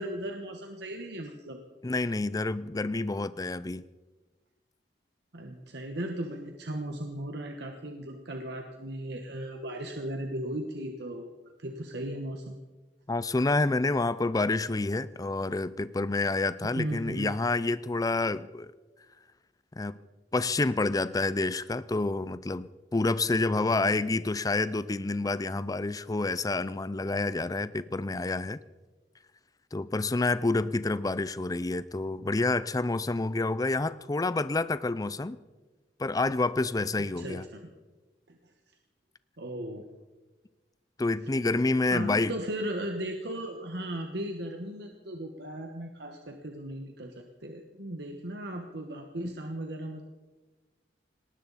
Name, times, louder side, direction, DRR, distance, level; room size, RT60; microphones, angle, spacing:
voice 1, 0.0-1.6 5.3-11.3 11.6-12.6 16.6-17.3 37.0-37.6 38.3-38.4 39.4-39.8 41.9-50.0, right 1 dB, 65° right, 4 dB, 1.3 m, -37 dB
voice 2, 1.8-3.8 13.1-18.7 19.8-20.0 20.3-28.6 29.7-35.4 36.0-37.5 41.0-42.4, left 3 dB, 20° left, 16 dB, 0.5 m, -28 dB
19.0 x 18.5 x 4.1 m, 1.3 s
head